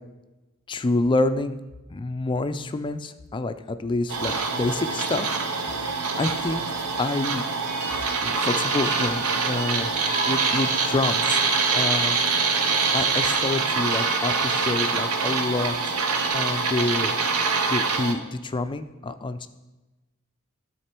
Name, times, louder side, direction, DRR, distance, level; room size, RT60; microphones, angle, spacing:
voice 1, 0.7-1.6 1.9-5.9 6.2-6.6 7.0-7.4 8.2-11.5 11.7-12.4 12.9-16.0 16.3-17.1 17.7-19.5, left 2 dB, 20° left, 10 dB, 0.4 m, -28 dB
sound 1, 4.1-18.1, right 4 dB, 85° right, 0.8 m, -25 dB
sound 2, 7.6-16.3, right 3 dB, 40° right, 1.3 m, -36 dB
12.0 x 4.3 x 4.4 m, 1.1 s
head